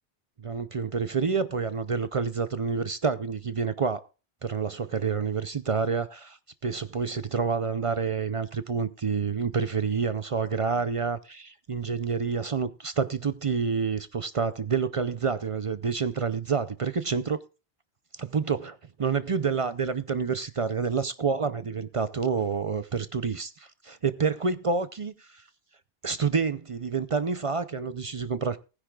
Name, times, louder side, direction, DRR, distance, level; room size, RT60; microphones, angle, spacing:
voice 1, 0.4-4.1 4.4-17.4 18.2-25.4 26.0-28.6, right 5 dB, 40° right, 0.5 m, -28 dB
19.5 x 9.8 x 2.3 m
omnidirectional pair, 1.1 m